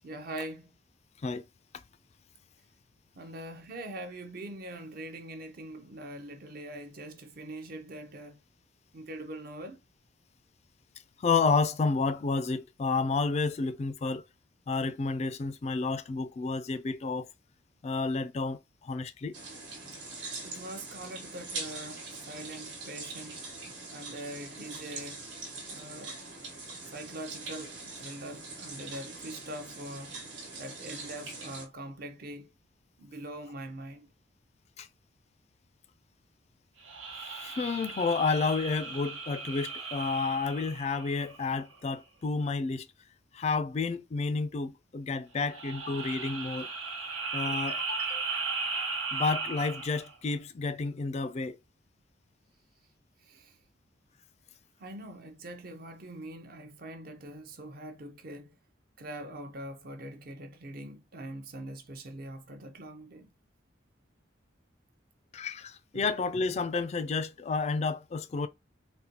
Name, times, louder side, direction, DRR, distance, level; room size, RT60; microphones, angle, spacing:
voice 1, 0.0-0.7 3.2-8.4 8.9-9.8 20.4-23.4 23.9-25.2 25.7-26.1 26.9-30.2 30.6-32.5 33.0-34.1 53.3-53.5 54.8-58.6 59.0-63.3 65.9-66.0, right 1 dB, 50° right, 0.6 m, -43 dB
voice 2, 11.2-14.2 14.7-17.3 17.8-19.4 34.8-34.9 37.2-42.9 43.3-46.7 47.3-48.3 49.1-51.6 65.3-68.5, left 4 dB, 35° left, 0.3 m, -30 dB
sound 1, 19.3-31.7, right 3 dB, 65° right, 1.2 m, -42 dB
sound 2, 36.8-41.6 45.4-50.1, right 4 dB, 90° right, 0.9 m, -36 dB
4.0 x 2.2 x 2.8 m
head